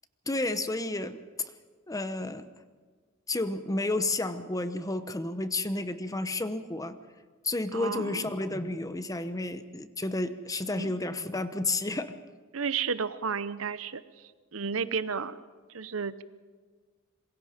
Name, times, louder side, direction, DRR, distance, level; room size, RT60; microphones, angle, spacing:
voice 1, 0.3-1.5 1.9-2.5 3.3-7.0 7.4-12.1, left 2 dB, 15° left, 11 dB, 0.9 m, -31 dB
voice 2, 7.7-8.3 10.7-11.0 12.5-14.0 14.5-15.4 15.7-16.2, right 5 dB, 70° right, 14 dB, 0.9 m, -32 dB
26.5 x 22.5 x 5.2 m, 1.5 s
head